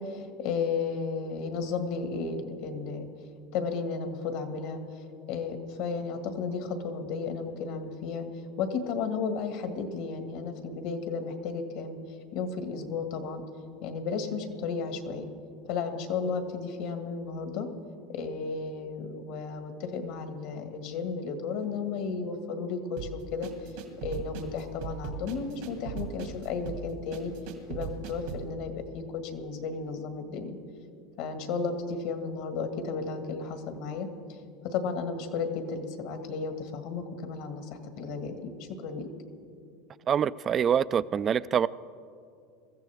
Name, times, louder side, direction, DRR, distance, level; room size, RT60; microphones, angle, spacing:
voice 1, 0.0-3.1 3.5-8.2 8.6-12.0 12.3-13.4 13.8-15.3 15.7-17.7 18.1-23.5 24.0-27.3 27.7-29.0 29.3-30.6 31.2-34.1 34.6-39.1, left 5 dB, 70° left, 7 dB, 1.7 m, -33 dB
sound 1, 23.0-28.5, right 8 dB, 75° right, 2.2 m, -39 dB
voice 2, 40.1-41.7, right 8 dB, 35° right, 18 dB, 0.3 m, -25 dB
22.0 x 14.0 x 3.5 m, 2.4 s
supercardioid pair, 110°, 0 cm